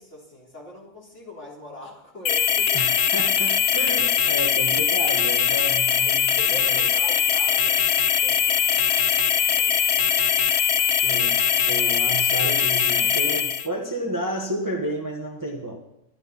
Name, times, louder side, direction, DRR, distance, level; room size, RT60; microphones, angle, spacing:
voice 1, 0.0-2.8 6.0-9.1 9.3-10.4, equal, 40° left, -3 dB, 3.9 m, -42 dB
sound 1, 2.2-13.7, left 8 dB, 55° left, 0.7 m, -21 dB
voice 2, 2.7-6.4 6.6-6.9 11.0-11.4 11.7-15.8, right 1 dB, 10° right, 2 dB, 1.3 m, -31 dB
23.0 x 11.0 x 4.2 m, 0.81 s
omnidirectional pair, 1.9 m